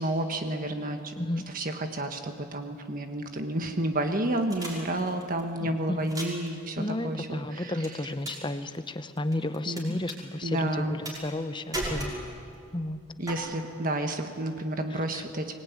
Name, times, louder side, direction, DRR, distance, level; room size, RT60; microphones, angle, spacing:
voice 1, 0.0-1.1 1.5-7.9 9.7-9.8 10.4-10.9 13.2-15.5, right 1 dB, 40° right, 5 dB, 1.5 m, -30 dB
sound 1, 4.5-5.4 6.0-6.5 7.8-8.5 8.7-9.8 10.1-10.2 11.0-11.4 11.7-12.5 13.3-13.4, right 1 dB, 20° right, 5.9 m, -35 dB
voice 2, 5.6-6.2 6.8-12.1 12.7-13.0 14.9-15.2, left 1 dB, 20° left, 10 dB, 0.9 m, -32 dB
24.5 x 20.0 x 9.5 m, 2.3 s
head